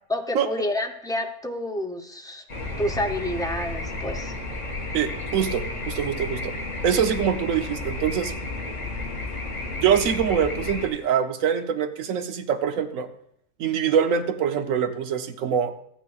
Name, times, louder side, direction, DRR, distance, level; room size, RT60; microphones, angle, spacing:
voice 1, 0.1-2.4 2.8-4.3, left 1 dB, 5° left, 3 dB, 0.4 m, -29 dB
sound 1, 2.5-10.9, left 2 dB, 30° left, 1.4 m, -32 dB
voice 2, 4.9-6.5 6.8-8.3 9.8-13.1 13.6-15.7, right 8 dB, 85° right, 8 dB, 1.2 m, -24 dB
13.5 x 9.1 x 2.4 m, 0.69 s
omnidirectional pair, 1.4 m